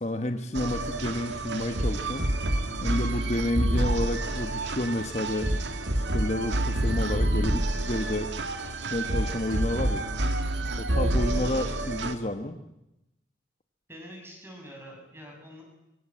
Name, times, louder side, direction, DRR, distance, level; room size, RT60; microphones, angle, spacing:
voice 1, 0.0-2.3 2.8-5.5 6.0-8.3 8.9-10.0 10.8-12.5, left 1 dB, 35° left, 7 dB, 1.2 m, -30 dB
sound 1, 0.5-12.1, right 1 dB, 70° right, 1.9 m, -28 dB
voice 2, 11.1-11.7 13.9-15.6, equal, 15° right, 1 dB, 7.4 m, -44 dB
24.5 x 24.0 x 7.6 m, 0.90 s
head